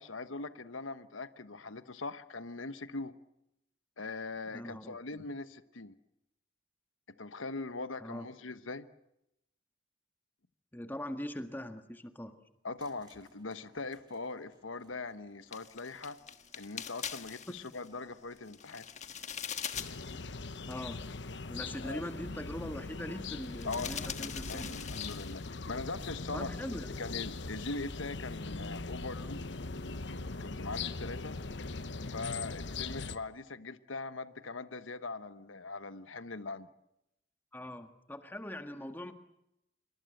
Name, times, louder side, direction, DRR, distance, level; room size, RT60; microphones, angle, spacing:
voice 1, 0.0-3.1 4.0-6.0 7.2-8.9 12.6-16.2 16.5-18.8 21.8-22.0 23.6-24.6 24.9-26.5 27.0-29.4 30.4-31.4 32.1-36.7, left 3 dB, 85° left, 12 dB, 1.2 m, -41 dB
voice 2, 4.5-5.0 8.0-8.3 10.7-12.3 20.7-21.0 21.5-25.0 26.3-26.9 37.5-39.1, left 1 dB, 10° left, 7 dB, 1.7 m, -41 dB
sound 1, 12.8-25.2, right 3 dB, 25° right, 3.1 m, -68 dB
sound 2, 15.5-17.9 18.4-20.2 20.4-20.5 20.9-21.0 21.7-22.1 23.4-25.5 25.8-26.1 26.3-26.8, left 8 dB, 35° left, 1.5 m, -43 dB
sound 3, 19.7-33.2, left 3 dB, 65° left, 1.0 m, -40 dB
26.5 x 24.0 x 7.8 m, 0.84 s
head